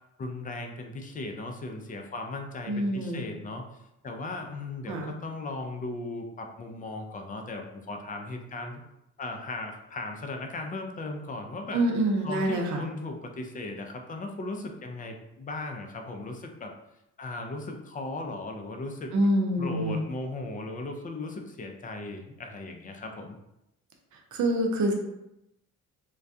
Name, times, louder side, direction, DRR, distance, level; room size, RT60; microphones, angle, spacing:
voice 1, 0.2-3.6 4.0-8.8 9.2-11.8 12.2-16.7 17.2-19.1 19.6-23.4, left 2 dB, 30° left, 3 dB, 0.4 m, -37 dB
voice 2, 2.7-3.2 4.9-5.1 11.7-12.8 19.1-20.0 24.3-24.9, right 1 dB, 70° right, 1 dB, 0.6 m, -26 dB
2.2 x 2.2 x 2.6 m, 0.87 s
cardioid pair, 90°, 30 cm